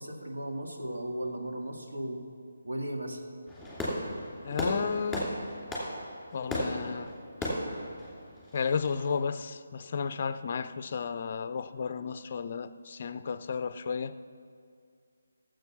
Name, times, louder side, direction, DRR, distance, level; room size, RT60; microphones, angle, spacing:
voice 1, 0.0-2.2 2.6-3.2, right 1 dB, 65° right, 2.0 m, -36 dB
Fireworks, 3.5-9.1, left 1 dB, ahead, 2.7 m, -35 dB
voice 2, 4.4-5.3 6.3-7.1 8.5-14.2, left 6 dB, 40° left, 0.5 m, -33 dB
17.0 x 7.8 x 5.7 m
figure-of-eight pair, 150°, 0 cm